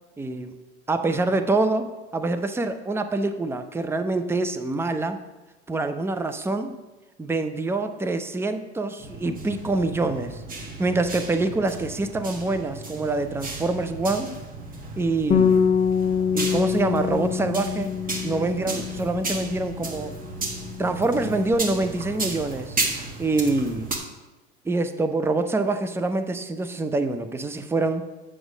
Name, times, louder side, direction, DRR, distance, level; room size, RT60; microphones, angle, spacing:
voice 1, 0.2-0.5 0.9-5.2 5.7-6.8 7.2-10.4 10.8-14.3 15.0-15.6 16.3-17.9 18.2-20.1 20.8-22.8 23.2-23.9 24.7-28.1, right 2 dB, 5° right, 9 dB, 0.6 m, -25 dB
sound 1, 9.0-24.0, right 3 dB, 25° right, 1.5 m, -34 dB
Bass guitar, 15.3-20.0 20.3-21.6, left 7 dB, 20° left, 0.8 m, -25 dB
7.9 x 6.2 x 5.0 m, 1.1 s
hypercardioid pair, 85°, 35 cm